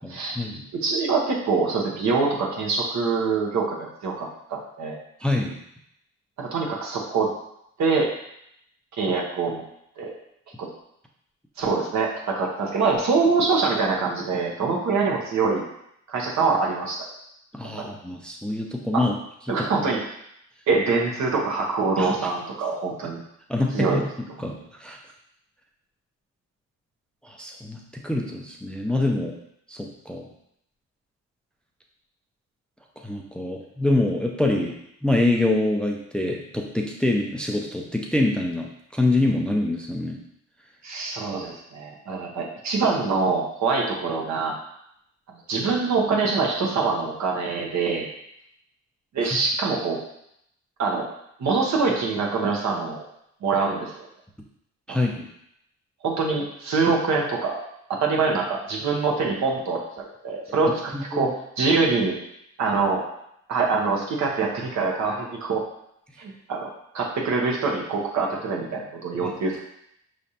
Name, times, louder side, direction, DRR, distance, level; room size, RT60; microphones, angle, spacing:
voice 1, 0.0-0.6 5.2-5.5 17.5-19.2 19.6-19.7 22.0-22.2 23.5-24.0 24.4-25.0 27.2-29.4 29.7-30.3 33.0-34.8 35.0-40.2 49.2-49.4 54.9-55.3 60.9-61.3, left 2 dB, 5° left, 0 dB, 0.5 m, -25 dB
voice 2, 0.8-5.0 6.4-7.3 7.8-8.1 8.9-9.6 10.0-10.1 10.6-10.7 11.6-15.6 16.1-17.0 17.8-17.9 19.5-20.0 20.7-23.2 23.7-24.0 40.8-44.6 45.5-48.1 49.1-50.0 50.8-51.1 51.4-53.0 53.4-53.9 54.9-55.0 56.0-57.6 57.9-59.8 60.2-62.2 62.6-63.0 63.5-65.6 66.2-66.7 66.9-69.6, right 4 dB, 65° right, -1 dB, 1.1 m, -24 dB
4.9 x 3.3 x 2.8 m, 0.75 s
cardioid pair, 90°, 30 cm